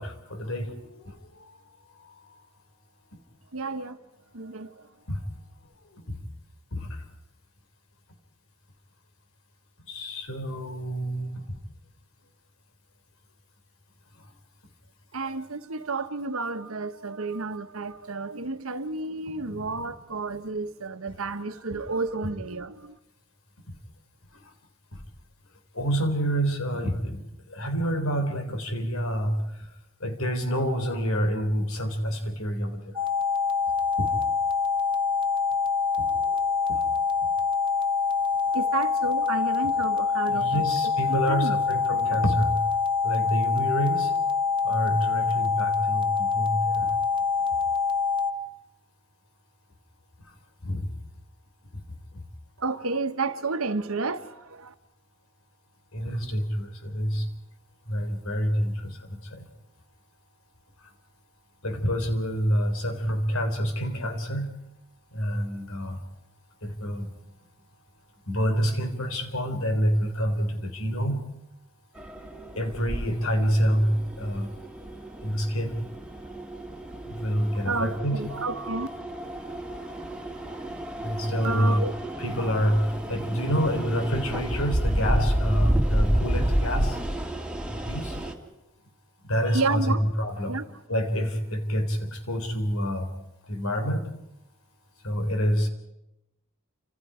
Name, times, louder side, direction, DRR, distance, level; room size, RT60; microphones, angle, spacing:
voice 1, 0.0-1.6 2.0-2.1 5.1-5.2 5.9-6.2 6.7-7.0 9.9-11.5 19.4-19.9 24.9-25.0 25.7-27.2 27.5-29.7 30.0-33.0 34.0-34.1 36.0-36.4 36.7-36.9 40.3-42.7 43.0-44.1 44.6-46.9 50.2-50.3 50.6-50.9 55.9-57.3 57.9-59.4 60.8-60.9 61.6-64.5 65.1-66.0 66.6-67.1 68.3-71.2 72.6-74.5 75.2-75.8 77.0-78.2 81.0-81.8 82.2-87.0 87.7-88.2 89.2-90.6 90.9-93.1 93.5-94.0 95.0-95.7, equal, 75° left, 3.6 m, -27 dB
voice 2, 3.5-4.0 4.3-4.7 15.1-22.9 38.5-40.6 41.1-41.6 52.6-54.7 77.5-78.9 81.4-81.9 89.5-90.0 90.3-90.7, right 3 dB, 75° right, 1.2 m, -31 dB
sound 1, 33.0-48.3, left 5 dB, 25° right, 1.3 m, -25 dB
sound 2, 72.0-88.3, right 1 dB, 5° right, 1.9 m, -30 dB
29.0 x 26.5 x 5.0 m
head